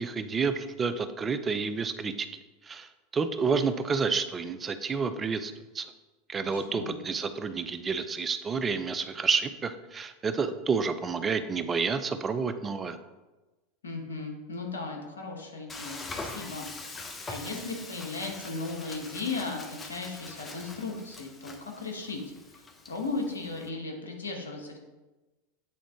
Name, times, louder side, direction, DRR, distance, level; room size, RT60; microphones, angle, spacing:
voice 1, 0.0-2.3 2.6-5.9 6.3-13.0, right 5 dB, 25° right, 10 dB, 0.5 m, -29 dB
voice 2, 6.4-7.0 13.8-17.0 17.3-22.2 22.6-24.8, left 3 dB, 85° left, 2 dB, 1.1 m, -36 dB
Frying (food), 15.7-23.7, left 3 dB, 20° left, 0.8 m, -43 dB
8.4 x 3.6 x 3.6 m, 1.2 s
hypercardioid pair, 90°, 0 cm